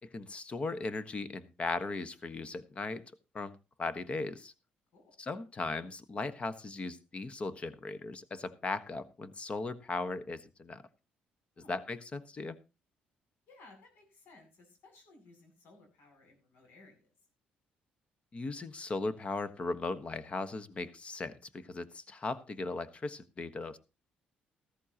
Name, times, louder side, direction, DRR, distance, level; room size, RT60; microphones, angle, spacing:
voice 1, 0.0-3.0 3.3-4.5 5.2-10.8 11.7-12.6 18.3-23.8, left 3 dB, 35° left, 13 dB, 1.4 m, -38 dB
voice 2, 13.5-17.1, left 3 dB, 75° left, 4 dB, 7.9 m, -59 dB
14.5 x 14.0 x 3.0 m, 0.29 s
cardioid pair, 85°, 3 cm